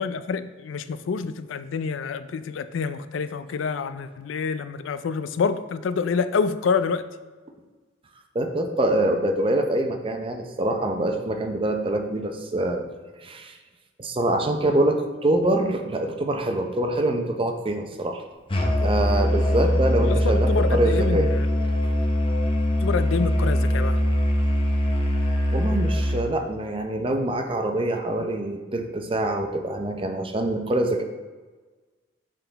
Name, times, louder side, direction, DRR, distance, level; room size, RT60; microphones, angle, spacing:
voice 1, 0.0-7.0 20.0-21.5 22.8-24.0, left 5 dB, 80° left, 13 dB, 0.4 m, -27 dB
voice 2, 8.3-12.8 13.2-13.5 14.0-18.2 18.8-21.3 25.5-31.0, right 1 dB, 30° right, 5 dB, 0.6 m, -25 dB
Musical instrument, 18.5-26.3, equal, 25° left, 0.7 m, -22 dB
6.8 x 3.8 x 3.9 m, 1.3 s
head